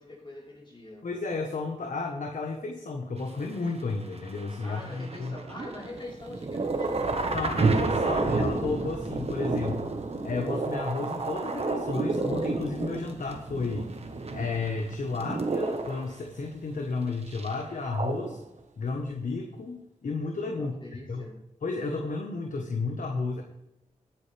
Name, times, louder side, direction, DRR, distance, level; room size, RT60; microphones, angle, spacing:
voice 1, 0.0-1.1 4.6-7.3 20.5-21.4, left 1 dB, 40° left, -4 dB, 5.9 m, -44 dB
voice 2, 1.0-5.3 7.3-9.9 10.2-13.9 14.3-18.4 18.8-20.7 21.1-21.2 21.6-23.4, left 3 dB, 75° left, 3 dB, 1.4 m, -32 dB
sound 1, 3.4-16.2 17.3-18.5, right 3 dB, 50° right, 1.5 m, -32 dB
Thunder, 6.2-17.8, right 3 dB, 65° right, 1.5 m, -34 dB
19.5 x 9.2 x 3.5 m, 0.88 s
wide cardioid pair, 80°, 13 cm